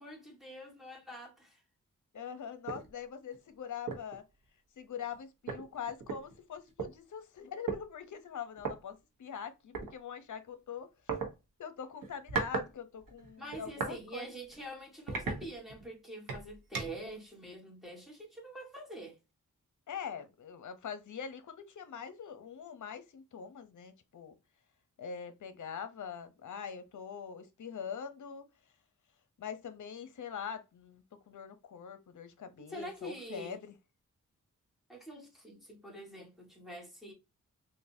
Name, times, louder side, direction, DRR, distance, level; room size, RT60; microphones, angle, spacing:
voice 1, 0.0-1.6 13.4-19.2 32.6-33.6 34.9-37.1, right 1 dB, ahead, 1.6 m, -46 dB
voice 2, 2.1-4.2 4.8-10.9 11.6-14.3 19.9-24.4 25.0-28.4 29.4-33.7, left 7 dB, 65° left, 0.7 m, -43 dB
sound 1, 2.7-2.9 3.3-3.4 3.9-4.1 5.1-5.2 5.5-6.9 7.7-7.8 8.6-8.7 9.7-9.9 11.1-11.3 12.0-12.7 13.0-14.0 14.4-14.6 15.1-15.9 16.3-17.1, right 5 dB, 85° right, 1.1 m, -37 dB
3.9 x 2.6 x 2.6 m
cardioid pair, 80°, 32 cm